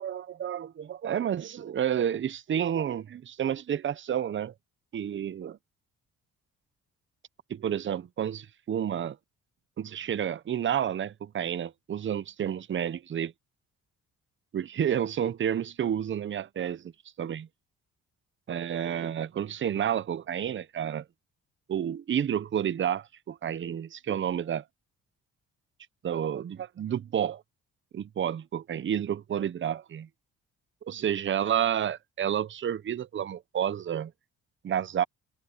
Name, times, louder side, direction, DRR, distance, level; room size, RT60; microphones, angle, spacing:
voice 1, 0.0-4.5 4.9-5.6 7.5-9.2 9.8-13.3 14.5-16.8 17.2-17.5 18.5-21.0 21.7-24.6 26.0-27.4 27.9-30.1 30.8-34.1 34.6-35.0, right 9 dB, 40° right, 0.7 m, -30 dB
cardioid pair, 90°, 30 cm